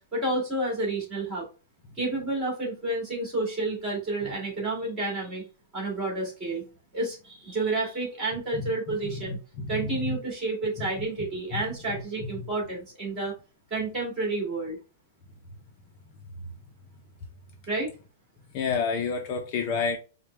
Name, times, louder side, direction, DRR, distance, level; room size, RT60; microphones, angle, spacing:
voice 1, 0.1-1.5 2.0-5.4 5.7-6.6 6.9-9.4 9.7-13.3 13.7-14.8 17.7-17.9, right 2 dB, 20° right, 2.0 m, -30 dB
voice 2, 8.5-10.2 10.8-11.0 11.5-11.6 18.5-20.0, left 5 dB, 30° left, 0.5 m, -30 dB
4.9 x 2.2 x 3.2 m
hypercardioid pair, 165°, 0 cm